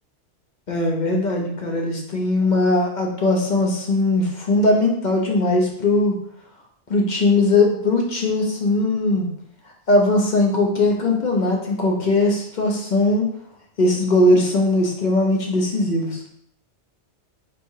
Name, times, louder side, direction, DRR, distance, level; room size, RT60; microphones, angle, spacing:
voice 1, 0.7-6.2 6.9-9.3 9.9-13.3 13.8-16.2, left 2 dB, 45° left, 0 dB, 0.8 m, -19 dB
4.6 x 3.3 x 2.7 m, 0.68 s
omnidirectional pair, 1.2 m